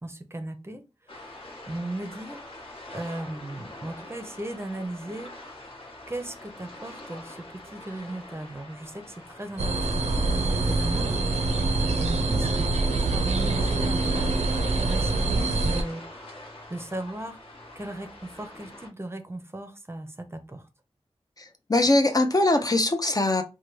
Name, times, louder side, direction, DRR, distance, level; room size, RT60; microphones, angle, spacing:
voice 1, 0.0-0.8 1.1-1.3 1.7-2.4 2.9-5.3 6.1-11.2 11.8-16.0 16.7-17.4 17.8-20.6, right 1 dB, 25° right, 0.6 m, -37 dB
sound 1, 1.1-18.9, left 1 dB, 60° left, 1.1 m, -44 dB
sound 2, 9.6-15.8, right 3 dB, 80° right, 0.4 m, -25 dB
voice 2, 21.4-23.4, left 2 dB, 35° left, 0.5 m, -22 dB
3.1 x 2.2 x 3.1 m
wide cardioid pair, 50°, 11 cm